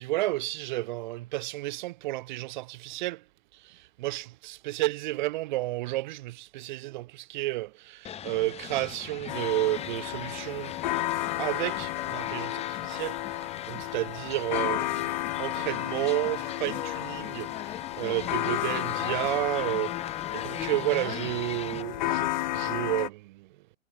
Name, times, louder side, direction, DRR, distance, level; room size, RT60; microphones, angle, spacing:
voice 1, 0.0-3.2 3.5-10.8 11.4-23.5, right 18 dB, 35° right, 3.4 m, -32 dB
sound 1, 8.0-21.8, left 10 dB, 15° left, 5.0 m, -41 dB
sound 2, 9.3-23.1, left 15 dB, 35° left, 1.4 m, -32 dB
figure-of-eight pair, 120°, 40 cm